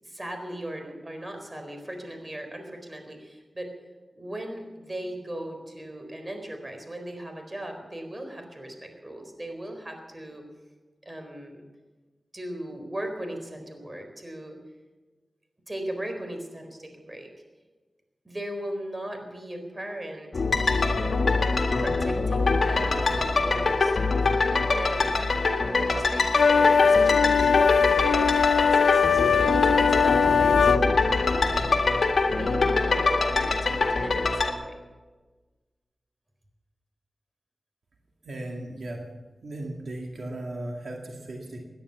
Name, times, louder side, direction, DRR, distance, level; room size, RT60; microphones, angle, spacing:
voice 1, 0.0-3.7 4.2-10.4 11.0-11.6 12.3-14.5 15.7-17.3 18.2-20.5 21.8-25.1 25.7-30.9 31.3-31.7 32.2-34.8, right 1 dB, 25° right, 5 dB, 4.2 m, -38 dB
sound 1, 20.3-34.5, left 3 dB, 70° left, 1.9 m, -24 dB
sound 2, 26.3-30.8, left 6 dB, 85° left, 0.4 m, -20 dB
voice 2, 38.2-39.0 39.4-41.6, right 1 dB, 75° right, 0 dB, 2.2 m, -36 dB
17.0 x 10.5 x 7.0 m, 1.3 s
cardioid pair, 50°, 0 cm